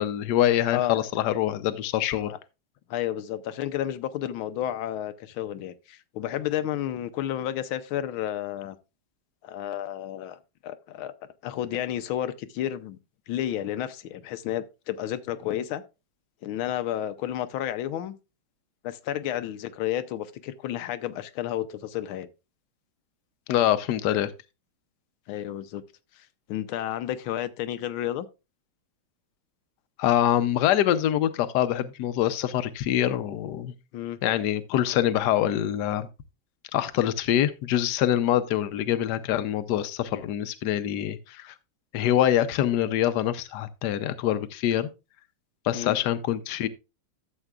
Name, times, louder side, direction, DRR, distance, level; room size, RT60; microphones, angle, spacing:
voice 1, 0.0-2.3 23.5-24.3 30.0-33.7 34.2-36.1 36.7-41.5 41.9-44.9 45.6-46.7, left 11 dB, 65° left, 1.1 m, -25 dB
voice 2, 2.9-8.8 9.4-11.1 11.4-13.0 13.3-15.8 16.4-18.2 18.8-22.3 25.3-25.8 26.1-28.3 33.9-34.2 45.7-46.0, left 11 dB, 85° left, 1.5 m, -31 dB
12.5 x 7.4 x 2.4 m
omnidirectional pair, 2.2 m